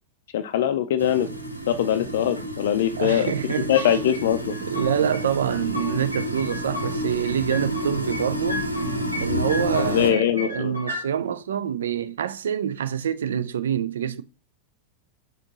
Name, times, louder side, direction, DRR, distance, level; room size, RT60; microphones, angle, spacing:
voice 1, 0.3-1.3 1.7-3.3 3.7-4.5 9.8-10.7, left 10 dB, 55° left, 0.4 m, -22 dB
sound 1, 1.0-10.1, equal, 90° left, 0.7 m, -30 dB
voice 2, 3.0-4.0 4.6-8.7 9.2-14.2, right 9 dB, 65° right, 0.3 m, -26 dB
sound 2, 3.2-4.2 4.5-5.2 5.5-6.9 7.2-8.2 8.5-9.2 9.5-11.0, left 2 dB, 85° right, 1.9 m, -34 dB
4.3 x 3.7 x 2.9 m
figure-of-eight pair, 90°, 0 cm